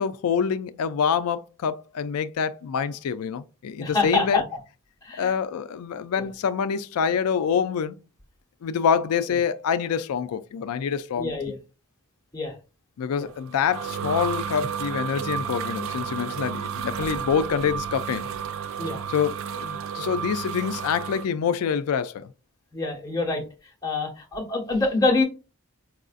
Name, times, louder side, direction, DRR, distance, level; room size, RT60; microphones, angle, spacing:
voice 1, 0.0-4.4 5.2-8.0 8.6-11.3 13.0-18.3 19.1-22.3, left 7 dB, 85° left, 0.4 m, -26 dB
voice 2, 3.7-4.4 5.0-5.3 6.1-6.3 11.2-11.6 12.3-12.5 13.1-13.3 18.8-19.0 22.7-23.4 23.8-25.2, left 3 dB, 15° left, 1.1 m, -25 dB
sound 1, 13.3-21.3, right 7 dB, 65° right, 0.4 m, -32 dB
4.7 x 2.5 x 2.4 m
head